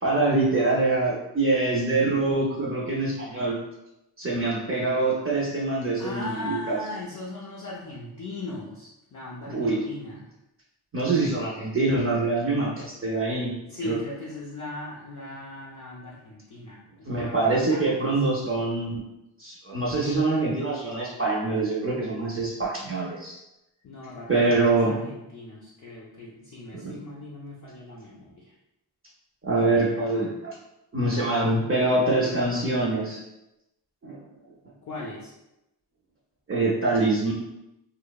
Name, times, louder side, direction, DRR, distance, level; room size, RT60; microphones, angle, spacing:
voice 1, 0.0-3.6 4.2-6.8 9.5-9.8 10.9-13.5 13.8-14.0 17.0-19.0 19.4-23.4 24.3-25.0 26.8-26.9 29.4-30.6 30.9-33.2 34.0-34.2 36.5-37.3, right 2 dB, 30° right, -5 dB, 0.5 m, -24 dB
voice 2, 6.0-10.3 13.6-18.4 23.8-28.6 34.8-35.3, left 2 dB, 50° left, -4 dB, 0.4 m, -39 dB
2.9 x 2.0 x 2.2 m, 0.91 s
wide cardioid pair, 110°, 42 cm